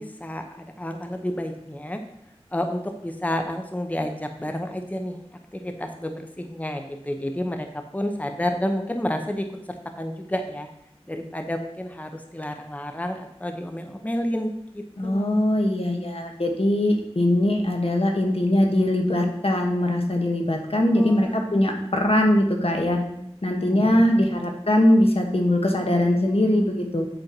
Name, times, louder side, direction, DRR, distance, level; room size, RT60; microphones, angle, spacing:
voice 1, 0.0-2.0 2.5-5.2 5.5-7.7 7.9-9.4 10.0-10.7 11.1-15.3 20.9-21.5 23.7-23.9, left 1 dB, 15° left, 5 dB, 0.7 m, -30 dB
voice 2, 15.0-23.0 23.4-27.0, left 1 dB, 65° left, 2 dB, 1.4 m, -21 dB
7.9 x 4.5 x 5.9 m, 0.79 s
wide cardioid pair, 40°, 11 cm